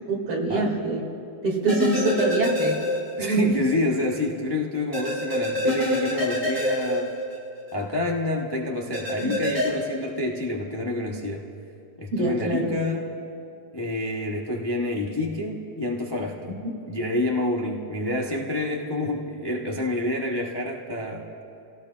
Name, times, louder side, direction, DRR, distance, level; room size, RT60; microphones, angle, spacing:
voice 1, 0.1-1.0 1.4-2.9 3.2-3.6 9.2-9.4 12.1-12.8 16.6-16.7, right 2 dB, 75° right, -2 dB, 3.3 m, -25 dB
sound 1, 1.7-3.4 3.7-3.8 4.9-7.7 8.9-9.7, left 1 dB, 10° right, 3.0 m, -26 dB
voice 2, 3.2-7.1 7.7-11.5 12.0-13.1 13.7-16.5 16.9-21.3, left 1 dB, 30° left, -2 dB, 0.4 m, -28 dB
29.5 x 17.5 x 2.4 m, 2.6 s
omnidirectional pair, 2.4 m